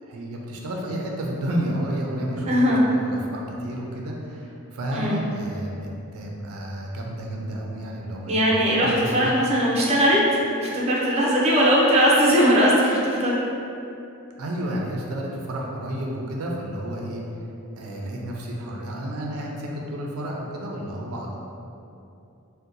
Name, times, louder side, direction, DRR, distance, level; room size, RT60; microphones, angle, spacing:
voice 1, 0.0-8.4 8.8-9.3 14.4-17.2 17.8-21.5, right 1 dB, 90° right, -1 dB, 0.4 m, -31 dB
voice 2, 2.5-2.8 4.9-5.2 8.3-13.3, equal, 30° right, -5 dB, 0.5 m, -20 dB
2.7 x 2.1 x 3.7 m, 2.7 s
head